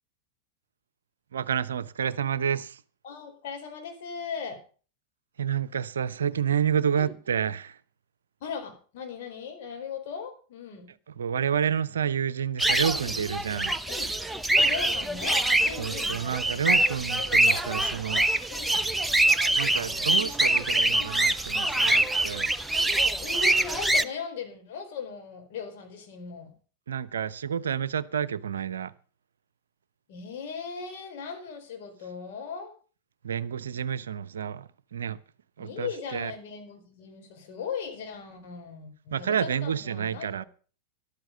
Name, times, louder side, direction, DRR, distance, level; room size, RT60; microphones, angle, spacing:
voice 1, 1.3-2.8 5.4-7.8 11.2-13.7 15.8-18.5 19.6-22.5 26.9-28.9 33.2-35.2 35.6-36.3 39.1-40.4, right 8 dB, 65° right, 0.7 m, -29 dB
voice 2, 3.0-4.6 7.0-7.1 8.4-10.9 12.9-13.2 13.9-14.1 14.5-16.3 17.1-17.6 18.5-18.7 20.9-21.1 23.2-26.5 30.1-32.7 35.6-40.3, left 6 dB, 50° left, 4.5 m, -38 dB
sound 1, 12.6-24.0, right 1 dB, 5° right, 0.7 m, -24 dB
14.0 x 12.0 x 5.3 m
figure-of-eight pair, 90°, 0 cm